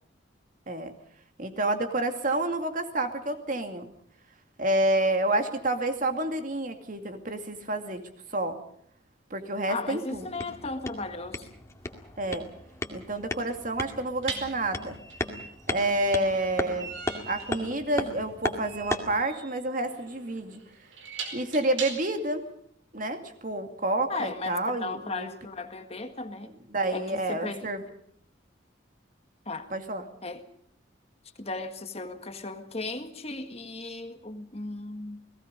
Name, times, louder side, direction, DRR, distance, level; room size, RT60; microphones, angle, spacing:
voice 1, 1.4-3.9 4.6-8.0 8.3-8.6 9.3-10.3 12.2-12.4 12.9-15.0 15.7-16.9 17.3-20.6 21.3-22.4 22.9-25.3 26.7-27.8 29.7-30.0, right 1 dB, 45° right, 6 dB, 2.4 m, -29 dB
voice 2, 9.7-11.5 24.1-26.5 26.9-27.7 29.5-29.7 30.2-30.4 31.4-35.2, left 3 dB, 30° left, 7 dB, 1.7 m, -36 dB
sound 1, 10.1-19.2, left 1 dB, 15° left, 2.1 m, -36 dB
sound 2, 11.8-12.0 14.2-22.3, right 5 dB, 80° right, 4.6 m, -41 dB
30.0 x 19.0 x 5.3 m, 0.66 s
head